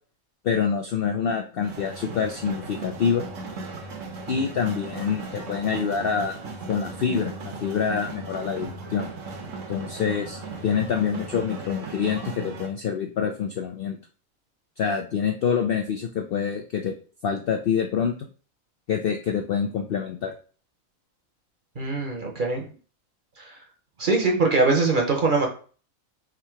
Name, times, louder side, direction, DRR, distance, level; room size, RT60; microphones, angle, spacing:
voice 1, 0.4-3.2 4.3-6.3 6.7-9.1 9.7-14.0 14.8-16.9 17.2-18.1 18.9-20.3, left 7 dB, 70° left, 4 dB, 0.5 m, -26 dB
sound 1, 1.6-12.7, right 3 dB, 65° right, 1.2 m, -37 dB
voice 2, 21.8-22.7 23.4-23.5 24.0-25.5, right 3 dB, 45° right, 1 dB, 0.9 m, -22 dB
3.7 x 2.8 x 4.4 m, 0.39 s
omnidirectional pair, 1.5 m